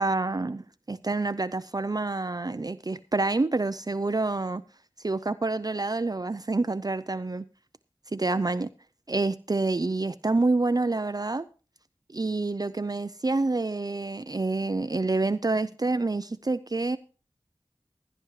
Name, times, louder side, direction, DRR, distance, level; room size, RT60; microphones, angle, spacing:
voice 1, 0.0-4.6 5.0-7.4 8.1-8.7 9.1-11.5 12.1-17.0, right 3 dB, 40° right, 0.5 m, -27 dB
16.5 x 11.0 x 3.2 m
wide cardioid pair, 45°, 10 cm